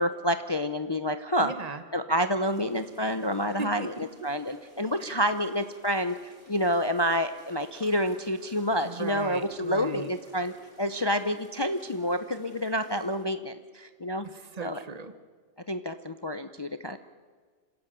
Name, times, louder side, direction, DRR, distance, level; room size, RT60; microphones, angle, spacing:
voice 1, 0.0-1.5 1.9-3.9 4.2-6.2 6.5-14.3 14.6-14.8 15.7-17.0, equal, 25° left, 10 dB, 0.6 m, -28 dB
voice 2, 1.4-1.8 3.6-4.3 5.0-5.1 8.8-10.1 14.2-15.1, right 4 dB, 35° right, 11 dB, 1.3 m, -38 dB
sound 1, 2.5-13.2, right 1 dB, 75° right, 5.1 m, -56 dB
27.0 x 16.5 x 7.5 m, 1.5 s
omnidirectional pair, 1.2 m